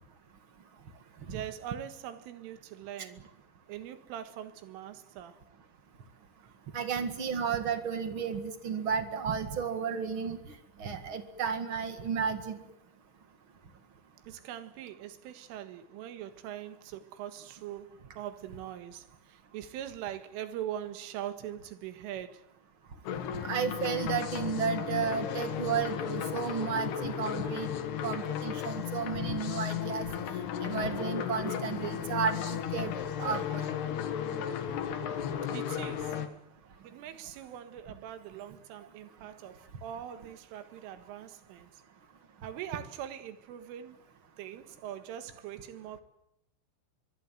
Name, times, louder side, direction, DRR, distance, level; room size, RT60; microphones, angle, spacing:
voice 1, 1.3-3.2 3.7-5.4 14.3-22.4 35.5-36.2 36.8-41.7 42.4-44.0 44.4-46.0, right 11 dB, 90° right, 4.2 m, -42 dB
voice 2, 6.7-10.4 10.8-12.6 23.4-27.7 28.0-33.7, right 6 dB, 75° right, 1.2 m, -33 dB
sound 1, 23.1-36.3, left 9 dB, 65° left, 3.5 m, -34 dB
24.0 x 23.5 x 9.3 m
omnidirectional pair, 5.6 m